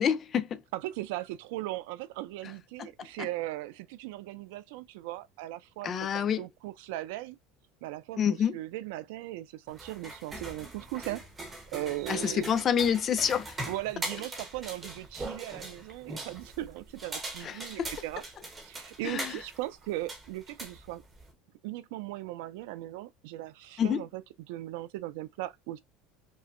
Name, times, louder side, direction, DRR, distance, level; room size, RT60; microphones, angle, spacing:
voice 1, 0.0-0.6 2.8-2.9 5.8-6.4 8.2-8.6 12.1-13.5 17.4-17.9 19.0-19.3 23.8-24.0, left 8 dB, 30° left, 0.4 m, -27 dB
voice 2, 0.7-7.4 7.8-8.3 8.5-11.3 11.7-12.5 13.7-18.2 18.6-21.0 21.6-24.2 24.5-25.8, right 16 dB, 75° right, 0.4 m, -38 dB
sound 1, 9.7-21.3, right 2 dB, 15° right, 1.0 m, -42 dB
5.4 x 2.1 x 2.5 m
cardioid pair, 155°, 0 cm